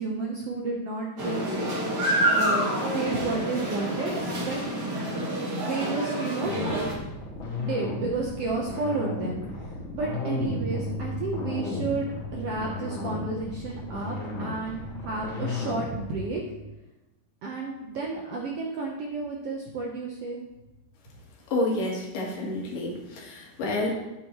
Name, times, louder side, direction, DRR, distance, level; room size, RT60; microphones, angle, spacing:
voice 1, 0.0-1.5 2.4-4.6 5.6-6.7 7.6-9.4 9.9-16.4 17.4-20.4, right 3 dB, 70° right, -2 dB, 1.5 m, -31 dB
sound 1, 1.2-6.9, right 1 dB, 40° right, 1.8 m, -28 dB
sound 2, 6.4-15.9, left 2 dB, 65° left, 3.4 m, -34 dB
sound 3, 10.4-16.7, equal, 85° right, 2.4 m, -39 dB
voice 2, 21.5-23.9, left 2 dB, 85° left, -1 dB, 3.3 m, -29 dB
11.0 x 8.2 x 3.0 m, 0.98 s
omnidirectional pair, 3.8 m